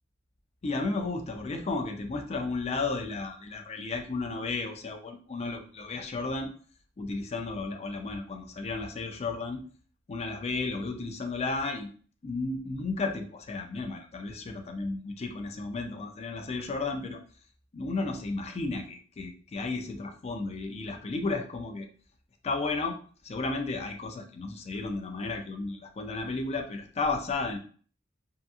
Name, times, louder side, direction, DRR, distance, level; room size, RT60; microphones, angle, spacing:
voice 1, 0.6-6.5 7.0-9.6 10.1-11.9 12.2-17.2 17.7-21.9 22.4-23.0 23.2-27.6, left 3 dB, 30° left, 5 dB, 0.4 m, -33 dB
2.7 x 2.5 x 2.3 m, 0.43 s
head